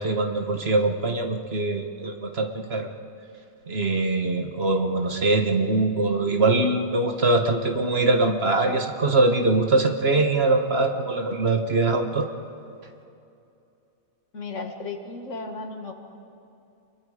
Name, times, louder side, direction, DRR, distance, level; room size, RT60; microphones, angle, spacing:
voice 1, 0.0-2.9 3.7-12.3, right 2 dB, 50° right, 5 dB, 1.5 m, -23 dB
voice 2, 14.3-15.9, left 3 dB, 60° left, 4 dB, 2.1 m, -34 dB
28.0 x 22.5 x 5.0 m, 2.7 s
omnidirectional pair, 1.4 m